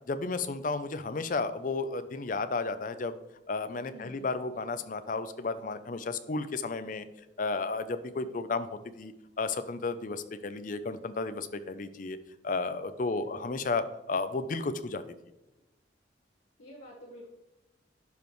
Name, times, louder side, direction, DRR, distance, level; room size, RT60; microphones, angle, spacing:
voice 1, 0.1-3.2 3.5-7.0 7.4-12.2 12.4-13.8 14.1-15.0, left 3 dB, 45° left, 11 dB, 0.5 m, -33 dB
voice 2, 3.8-4.3 13.1-13.5 16.6-17.3, equal, 85° left, -5 dB, 1.5 m, -48 dB
11.5 x 5.2 x 3.1 m, 0.98 s
head